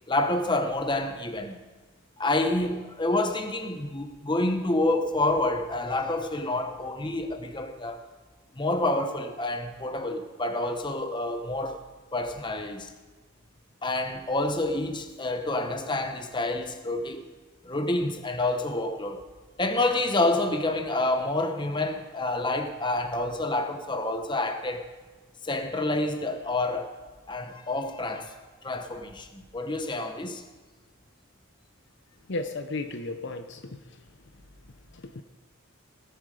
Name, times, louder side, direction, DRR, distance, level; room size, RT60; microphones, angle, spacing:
voice 1, 0.1-1.6 2.2-8.0 8.5-11.8 12.1-12.9 13.8-17.2 17.6-19.2 19.6-24.8 25.4-26.9 27.3-28.3 28.6-30.4, left 2 dB, 20° left, 0.9 m, -28 dB
voice 2, 32.3-33.8 34.9-35.2, left 2 dB, 55° left, 0.7 m, -34 dB
17.5 x 10.5 x 4.9 m
head